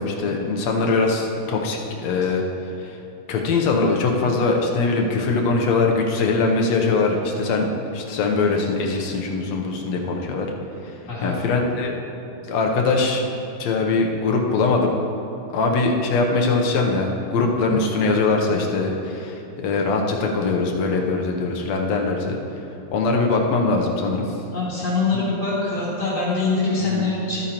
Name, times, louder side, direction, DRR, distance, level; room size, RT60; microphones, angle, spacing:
voice 1, 0.0-2.4 2.8-3.0 3.3-10.5 11.2-11.9 12.5-13.2 13.6-14.9 15.5-22.4 22.9-24.2 25.1-25.2 26.8-27.1, left 3 dB, 70° left, 1 dB, 1.9 m, -22 dB
voice 2, 24.5-27.4, left 3 dB, 35° left, -12 dB, 2.5 m, -24 dB
13.5 x 9.1 x 2.9 m, 2.9 s
omnidirectional pair, 3.4 m